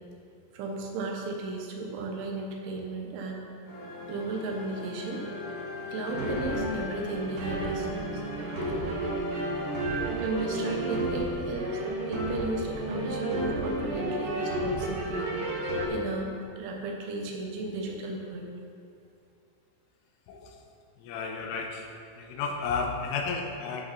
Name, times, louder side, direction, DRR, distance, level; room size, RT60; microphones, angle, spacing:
voice 1, 0.5-3.4 4.1-5.2 5.9-8.2 8.8-9.0 10.2-11.8 12.1-15.3 15.9-18.5, right 2 dB, 75° right, 1 dB, 3.4 m, -35 dB
sound 1, 3.6-12.0, left 1 dB, 65° left, 4.5 m, -38 dB
sound 2, 6.1-15.9, right 1 dB, 55° right, 3.0 m, -32 dB
voice 2, 21.0-21.9 22.2-23.9, left 5 dB, 85° left, 3 dB, 3.4 m, -32 dB
12.5 x 6.3 x 5.9 m, 2.6 s
omnidirectional pair, 5.7 m